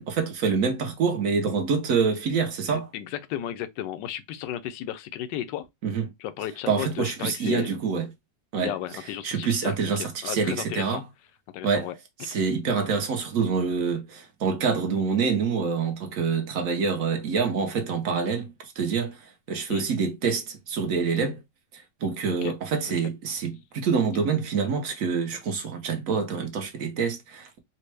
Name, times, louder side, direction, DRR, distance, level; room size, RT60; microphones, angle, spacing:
voice 1, 0.0-2.9 5.8-6.1 6.7-8.1 8.5-8.8 9.2-11.0 11.6-11.9 12.2-21.4 21.7-27.6, right 5 dB, 60° right, 1.0 m, -26 dB
voice 2, 2.7-5.7 6.2-7.7 8.6-11.0 11.5-11.9 19.7-19.8 22.4-22.5, left 11 dB, 85° left, 1.2 m, -34 dB
4.2 x 2.1 x 3.2 m
omnidirectional pair, 1.9 m